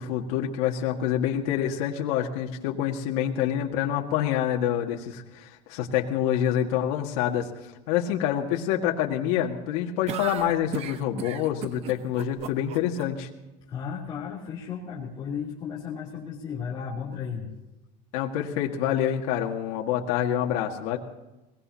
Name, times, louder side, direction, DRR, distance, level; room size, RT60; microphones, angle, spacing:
voice 1, 0.0-7.5 7.9-13.3 18.1-21.0, left 10 dB, 80° left, 1 dB, 2.0 m, -27 dB
sound 1, 10.1-13.0, right 9 dB, 35° right, 0.8 m, -36 dB
voice 2, 13.7-17.5, left 7 dB, 25° left, -7 dB, 3.1 m, -34 dB
23.0 x 19.5 x 2.9 m, 1.0 s
cardioid pair, 170°, 18 cm